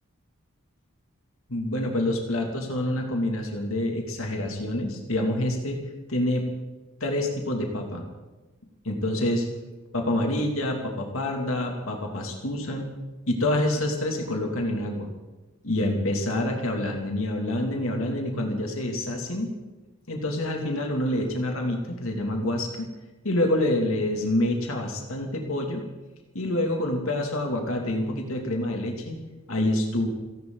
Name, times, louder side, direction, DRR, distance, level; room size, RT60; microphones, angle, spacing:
voice 1, 1.5-5.8 6.1-6.4 7.0-8.0 8.8-9.4 9.9-12.9 13.3-15.1 15.6-19.5 20.1-22.7 23.2-25.8 26.3-29.2 29.5-30.1, left 1 dB, 75° left, 1 dB, 2.7 m, -27 dB
30.0 x 11.5 x 4.0 m, 1.1 s
head